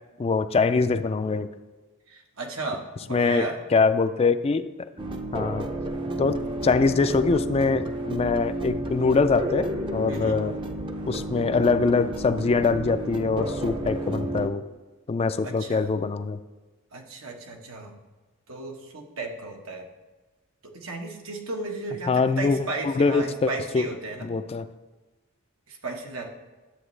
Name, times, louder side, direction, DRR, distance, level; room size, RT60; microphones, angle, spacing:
voice 1, 0.2-1.5 3.1-4.6 5.3-5.6 6.2-6.4 6.6-10.5 11.1-14.6 15.1-16.4 22.1-22.6 22.8-23.8 24.2-24.7, left 4 dB, 30° left, 11 dB, 0.3 m, -23 dB
voice 2, 2.1-3.6 10.1-10.4 15.4-15.9 16.9-18.0 18.5-19.9 20.6-24.3 25.7-26.3, right 3 dB, 85° right, 1 dB, 1.3 m, -35 dB
sound 1, 5.0-14.5, right 1 dB, 25° right, 0.6 m, -31 dB
11.5 x 7.9 x 3.2 m, 1.2 s
head